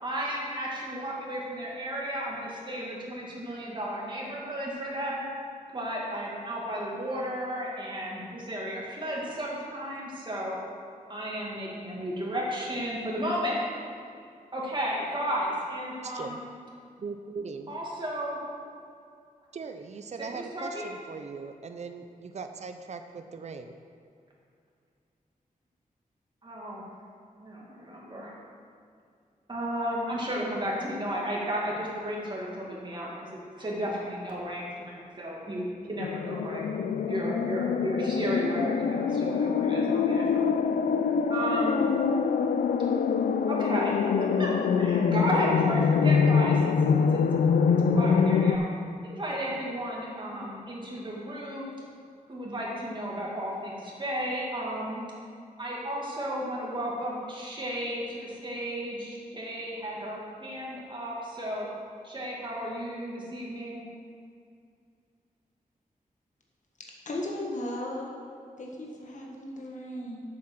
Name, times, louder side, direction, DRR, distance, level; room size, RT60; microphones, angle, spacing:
voice 1, 0.0-5.2 5.7-10.5 11.1-13.6 14.5-16.4 17.7-18.4 20.3-20.8 26.4-26.9 27.4-28.4 29.5-33.3 33.6-36.6 37.1-40.4 41.3-41.9 43.5-44.5 44.8-47.2 47.7-48.6 49.0-51.7 52.3-55.0 55.6-61.7 62.0-63.8, equal, 30° right, -4 dB, 2.2 m, -33 dB
voice 2, 16.0-16.4 17.0-17.7 19.5-23.8, right 4 dB, 50° right, 7 dB, 0.5 m, -39 dB
sound 1, 36.0-48.6, left 6 dB, 90° left, 0.4 m, -25 dB
voice 3, 67.0-68.1 68.6-70.2, left 1 dB, 55° left, -2 dB, 1.5 m, -36 dB
7.7 x 7.1 x 6.1 m, 2.3 s
wide cardioid pair, 120°, 15 cm